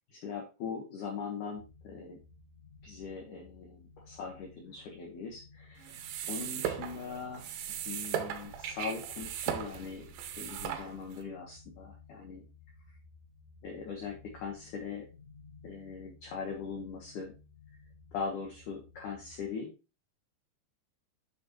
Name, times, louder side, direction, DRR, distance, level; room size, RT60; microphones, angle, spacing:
voice 1, 0.1-2.2 2.8-7.5 7.9-10.1 10.3-12.4 13.6-15.1 15.6-17.3 18.1-19.7, left 5 dB, 65° left, 0 dB, 2.0 m, -41 dB
sound 1, 1.6-19.5, left 4 dB, 85° left, 3.3 m, -56 dB
sound 2, 5.8-11.2, right 9 dB, 80° right, 2.2 m, -38 dB
8.3 x 6.0 x 3.0 m, 0.29 s
omnidirectional pair, 5.3 m